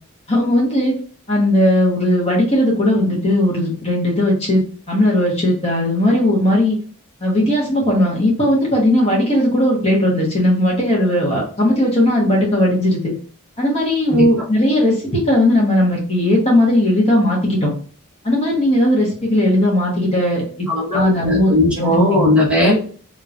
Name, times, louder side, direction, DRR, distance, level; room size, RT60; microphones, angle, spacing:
voice 1, 0.3-0.9 1.3-6.8 7.2-13.1 13.6-17.7 18.2-22.3, left 1 dB, 30° left, -4 dB, 1.1 m, -17 dB
voice 2, 20.7-22.8, left 1 dB, 5° right, -7 dB, 1.3 m, -17 dB
3.7 x 3.0 x 2.5 m, 0.44 s
head